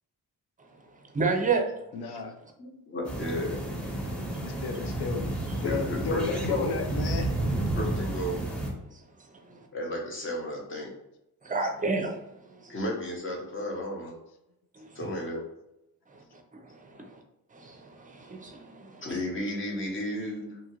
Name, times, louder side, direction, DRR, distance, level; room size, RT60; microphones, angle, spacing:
voice 1, 1.1-1.7 1.9-2.0 9.2-9.7 11.4-12.8 14.7-15.0 16.1-16.2 16.5-17.2 17.5-19.1, right 4 dB, 20° right, 3 dB, 0.5 m, -31 dB
voice 2, 1.9-2.3 4.1-5.2 5.5-7.3, left 5 dB, 80° left, 5 dB, 0.6 m, -33 dB
voice 3, 2.6-3.6 5.6-6.8 7.5-8.4 9.7-10.9 12.7-14.2 14.9-15.4 19.0-20.6, left 1 dB, 30° left, -1 dB, 0.9 m, -33 dB
sound 1, 3.0-8.7, right 1 dB, 5° left, 0.9 m, -31 dB
2.8 x 2.4 x 2.9 m, 0.87 s
cardioid pair, 85°, 39 cm